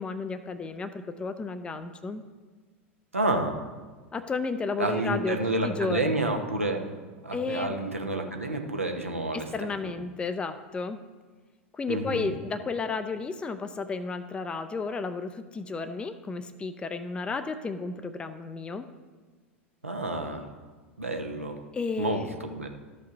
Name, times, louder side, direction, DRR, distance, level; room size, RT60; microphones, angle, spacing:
voice 1, 0.0-2.2 4.1-6.1 7.3-7.8 9.3-11.0 11.7-18.9 21.7-22.3, left 4 dB, 15° left, 9 dB, 0.5 m, -32 dB
voice 2, 3.1-3.6 4.8-6.9 7.2-9.5 9.8-9.9 11.9-12.3 19.8-20.5 21.0-21.6 22.0-22.7, right 2 dB, 85° right, 4 dB, 0.9 m, -29 dB
13.0 x 5.4 x 3.9 m, 1.4 s
figure-of-eight pair, 85°, 7 cm